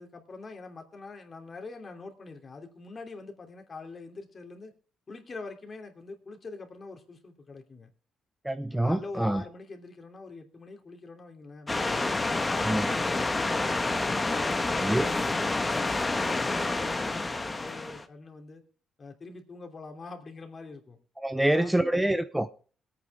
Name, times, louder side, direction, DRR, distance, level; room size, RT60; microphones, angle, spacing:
voice 1, 0.0-4.7 5.1-7.9 8.8-12.1 12.5-13.7 14.2-18.6 19.0-21.0 21.3-21.7, left 3 dB, 40° left, 4 dB, 2.9 m, -44 dB
voice 2, 8.4-9.4 12.6-12.9 14.8-15.1 21.2-22.5, right 1 dB, 5° right, 10 dB, 0.7 m, -26 dB
sound 1, 11.7-18.0, left 2 dB, 20° left, 1.2 m, -28 dB
20.5 x 9.0 x 3.4 m, 0.41 s
cardioid pair, 90°, 0 cm